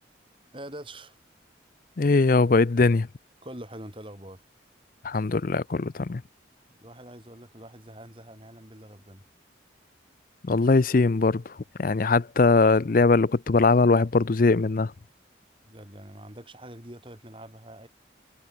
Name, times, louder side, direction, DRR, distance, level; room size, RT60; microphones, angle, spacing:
voice 1, 0.5-1.2 3.4-4.4 6.7-9.2 15.6-17.9, right 1 dB, 25° right, 6.3 m, -44 dB
voice 2, 2.0-3.1 5.0-6.2 10.4-11.4 11.8-14.9, left 3 dB, 45° left, 0.5 m, -21 dB
head